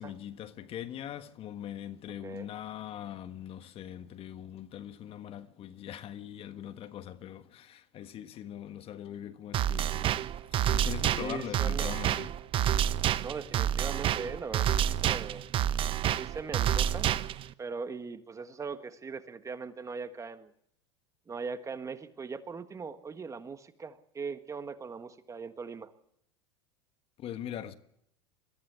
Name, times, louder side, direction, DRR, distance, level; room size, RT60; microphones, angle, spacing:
voice 1, 0.0-10.2 10.7-12.3 27.2-27.7, left 10 dB, 40° left, 1.4 m, -41 dB
sound 1, 9.5-17.5, right 10 dB, 40° right, 0.9 m, -29 dB
voice 2, 11.1-11.9 13.2-15.5 16.2-17.1 17.6-20.5 21.3-25.9, right 5 dB, 20° right, 1.5 m, -40 dB
22.5 x 15.0 x 8.2 m
hypercardioid pair, 95°, 14 cm